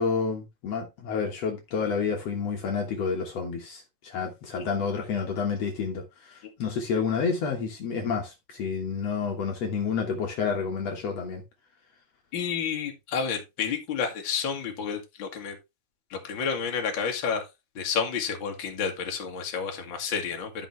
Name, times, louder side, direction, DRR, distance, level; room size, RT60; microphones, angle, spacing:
voice 1, 0.0-11.4, left 5 dB, 65° left, 2.4 m, -29 dB
voice 2, 12.3-15.5 16.1-17.5 17.8-20.7, left 6 dB, 45° left, 2.3 m, -30 dB
12.5 x 5.7 x 3.2 m
omnidirectional pair, 3.3 m